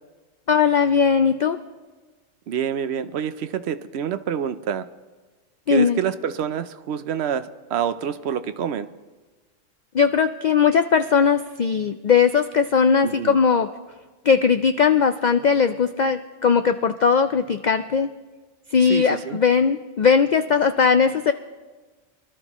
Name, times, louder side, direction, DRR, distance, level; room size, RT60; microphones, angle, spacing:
voice 1, 0.5-1.6 5.7-6.0 9.9-13.7 14.2-18.1 18.7-21.3, left 6 dB, 80° left, 9 dB, 0.4 m, -19 dB
voice 2, 2.5-4.9 5.7-8.9 13.0-13.4 18.8-19.4, right 8 dB, 65° right, 11 dB, 0.8 m, -27 dB
24.5 x 12.5 x 3.0 m, 1.3 s
omnidirectional pair, 1.3 m